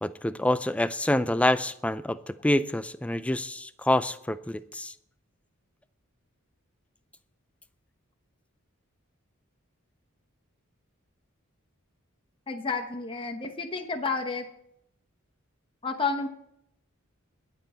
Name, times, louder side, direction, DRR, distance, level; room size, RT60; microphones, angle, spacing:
voice 1, 0.0-4.9, left 1 dB, 5° left, 13 dB, 0.4 m, -27 dB
voice 2, 12.5-14.4 15.8-16.3, left 4 dB, 25° left, 3 dB, 1.0 m, -30 dB
21.0 x 7.6 x 4.3 m, 0.75 s
head